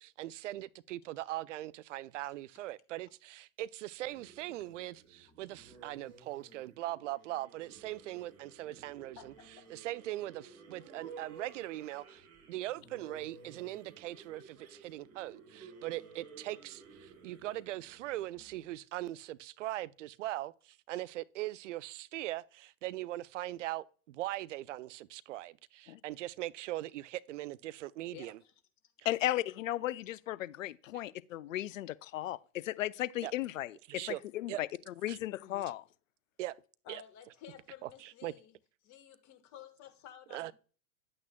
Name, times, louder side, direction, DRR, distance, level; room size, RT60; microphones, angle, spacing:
voice 1, 0.0-9.3 9.7-28.4 33.2-33.3 33.9-34.2 34.5-34.6 35.1-35.2 36.4-36.6 36.9-37.0 37.8-38.3 40.3-40.5, right 16 dB, 60° right, 0.5 m, -40 dB
sound 1, 4.0-18.9, right 5 dB, 35° right, 3.8 m, -55 dB
voice 2, 9.1-9.5 28.1-28.5 35.4-35.6 36.8-38.5 38.8-40.5, left 9 dB, 40° left, 1.5 m, -53 dB
voice 3, 29.0-34.7 35.0-35.8, left 14 dB, 70° left, 0.5 m, -35 dB
10.0 x 8.7 x 2.2 m
figure-of-eight pair, 90°, 41 cm